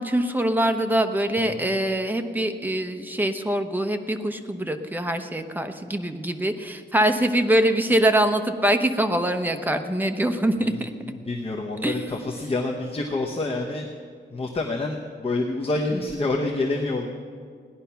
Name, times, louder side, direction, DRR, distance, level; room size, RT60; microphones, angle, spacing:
voice 1, 0.0-10.9 11.8-12.0, right 1 dB, 10° right, 6 dB, 0.8 m, -23 dB
Drum, 1.4-3.3, right 1 dB, 35° right, 4.8 m, -46 dB
voice 2, 10.6-13.9 14.3-17.1, left 2 dB, 30° left, 1 dB, 1.0 m, -27 dB
17.5 x 10.5 x 5.8 m, 2.1 s
wide cardioid pair, 140°, 19 cm